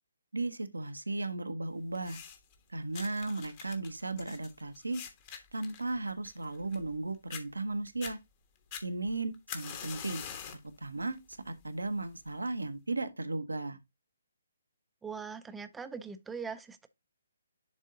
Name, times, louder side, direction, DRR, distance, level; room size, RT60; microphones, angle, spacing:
voice 1, 0.3-2.2 2.7-5.0 5.5-8.2 8.8-10.2 10.8-11.2 11.4-13.8, right 2 dB, 70° right, 0.9 m, -35 dB
sound 1, 1.9-2.5 2.9-7.0 7.3-7.4 7.9-8.1 8.7-10.7 11.1-11.5 12.3-12.4, left 8 dB, 30° left, 1.2 m, -44 dB
voice 2, 15.0-16.9, right 5 dB, 5° right, 0.6 m, -41 dB
10.5 x 3.6 x 2.7 m
figure-of-eight pair, 135°, 0 cm